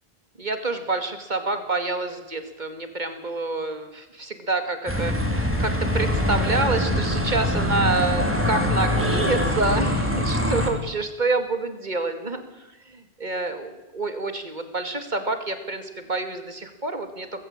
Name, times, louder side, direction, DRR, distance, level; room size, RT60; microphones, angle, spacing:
voice 1, 0.4-5.3 5.6-17.4, right 3 dB, 45° right, 8 dB, 2.5 m, -28 dB
sound 1, 4.9-10.7, left 1 dB, 10° right, 3.3 m, -23 dB
19.5 x 15.5 x 8.9 m, 1.0 s
omnidirectional pair, 1.1 m